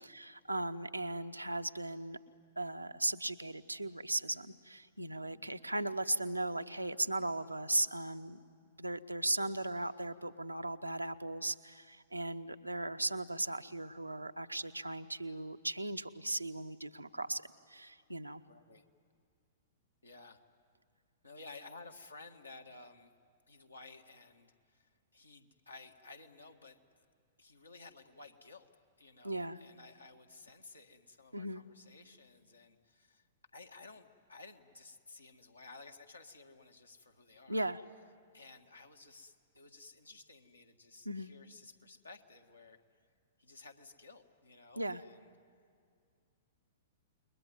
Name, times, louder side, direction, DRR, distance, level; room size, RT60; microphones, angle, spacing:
voice 1, 0.0-2.2 2.6-8.4 8.8-17.4 17.7-18.4 29.2-29.6 31.3-31.6 37.5-37.8 41.0-41.3 44.8-45.0, right 2 dB, 90° right, 7 dB, 0.8 m, -37 dB
voice 2, 5.1-5.5 18.5-18.8 20.0-20.4 21.2-23.1 23.5-27.0 27.4-28.7 29.0-33.3 33.5-37.6 38.3-42.8 43.4-45.3, left 3 dB, 80° left, 4 dB, 1.7 m, -55 dB
29.0 x 21.5 x 9.5 m, 2.3 s
figure-of-eight pair, 105°, 0 cm